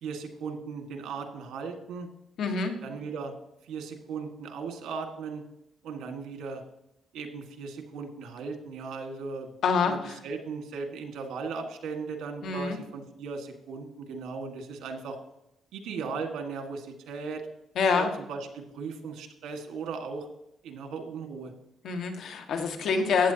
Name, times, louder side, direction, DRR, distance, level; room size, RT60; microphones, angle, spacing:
voice 1, 0.0-2.1 2.8-3.3 3.6-5.4 5.8-6.6 7.1-9.5 9.9-10.0 10.2-15.2 15.7-17.4 17.9-20.3 20.6-21.5, right 5 dB, 80° right, 5 dB, 1.8 m, -37 dB
voice 2, 2.4-2.7 9.6-10.2 12.4-12.8 17.7-18.1 21.8-23.3, left 5 dB, 70° left, 5 dB, 1.7 m, -26 dB
15.0 x 9.3 x 2.9 m, 0.84 s
cardioid pair, 90°, 0 cm